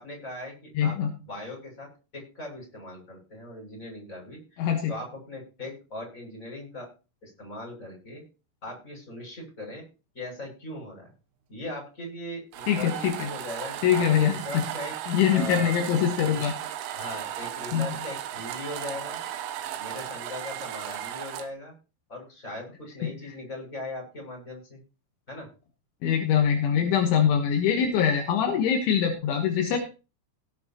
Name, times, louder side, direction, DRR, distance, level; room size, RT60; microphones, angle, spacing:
voice 1, 0.0-1.0 1.2-6.9 7.2-8.2 8.6-9.8 10.1-11.1 11.5-15.0 15.3-15.8 16.3-16.4 16.9-19.2 19.8-21.7 22.1-24.8 25.3-25.5, left 1 dB, 15° left, -1 dB, 7.1 m, -39 dB
voice 2, 0.8-1.1 4.6-4.9 12.7-13.3 13.8-14.3 15.1-16.5 17.7-17.9 26.0-29.8, left 8 dB, 75° left, 3 dB, 3.6 m, -23 dB
sound 1, 12.5-21.5, right 11 dB, 85° right, 3.7 m, -36 dB
17.5 x 9.7 x 3.0 m, 0.32 s
omnidirectional pair, 5.7 m